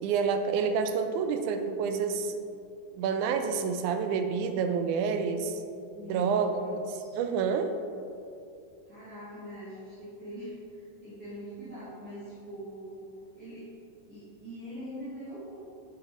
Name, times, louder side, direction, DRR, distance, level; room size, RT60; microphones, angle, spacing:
voice 1, 0.0-2.3 2.9-5.6 6.0-6.5 7.1-7.8, right 6 dB, 85° right, 7 dB, 2.0 m, -28 dB
voice 2, 5.9-7.2 8.8-13.0 13.3-13.7 14.1-15.6, equal, 40° right, -12 dB, 1.6 m, -43 dB
7.3 x 6.1 x 3.1 m, 2.5 s
omnidirectional pair, 3.5 m